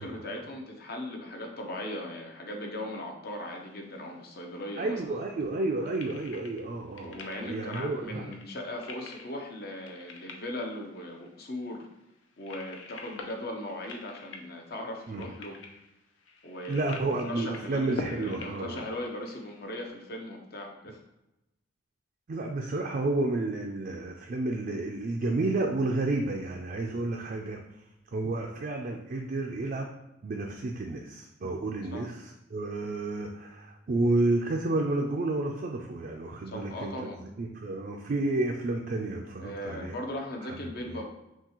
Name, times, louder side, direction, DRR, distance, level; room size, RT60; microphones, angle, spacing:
voice 1, 0.0-5.2 7.0-11.9 12.4-15.6 16.4-17.0 17.2-21.0 31.9-32.1 36.5-37.2 39.4-41.0, left 1 dB, 50° left, 2 dB, 0.8 m, -38 dB
sound 1, 3.3-19.9, left 3 dB, 80° left, 0.6 m, -46 dB
voice 2, 4.8-8.4 15.1-15.2 16.7-18.8 22.3-27.6 28.1-29.9 30.2-36.9 37.4-39.9 40.5-40.6 40.9-41.0, right 2 dB, 45° right, 1 dB, 0.4 m, -31 dB
5.9 x 2.4 x 3.0 m, 0.92 s
head